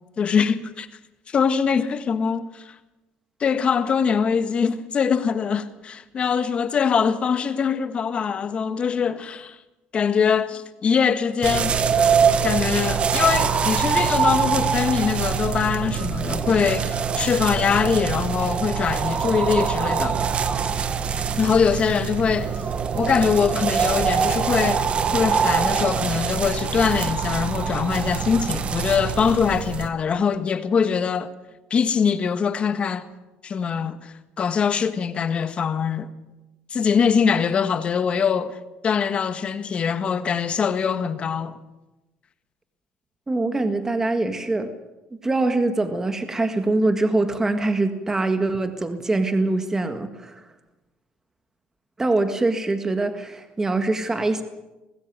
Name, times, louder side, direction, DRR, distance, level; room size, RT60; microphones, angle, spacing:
voice 1, 0.2-0.9 1.3-2.7 3.4-9.6 9.9-11.8 12.4-20.2 21.4-22.5 22.9-31.3 31.7-33.1 33.4-36.1 36.7-38.6 38.8-41.6, left 6 dB, 35° left, 1.6 m, -23 dB
sound 1, 11.4-29.9, right 6 dB, 35° right, 1.5 m, -24 dB
voice 2, 43.3-44.7 45.2-50.4 52.0-54.4, right 2 dB, 15° right, 1.8 m, -23 dB
20.0 x 16.0 x 9.2 m
cardioid pair, 115°, 3 cm